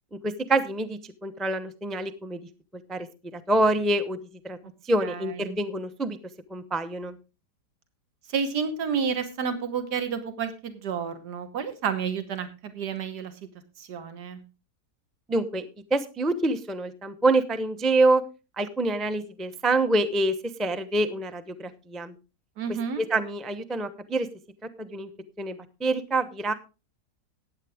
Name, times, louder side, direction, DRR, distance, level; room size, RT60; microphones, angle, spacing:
voice 1, 0.2-2.4 2.9-3.1 3.3-4.2 4.4-4.6 4.8-6.2 6.5-7.2 15.3-15.6 15.9-18.2 18.6-22.1 23.0-24.3 24.8-25.1 25.4-26.5, right 2 dB, ahead, 10 dB, 0.4 m, -26 dB
voice 2, 5.0-5.6 8.3-13.3 13.8-14.4 22.6-23.0, right 6 dB, 85° right, 9 dB, 1.9 m, -30 dB
15.0 x 9.8 x 3.5 m, 0.30 s
omnidirectional pair, 1.7 m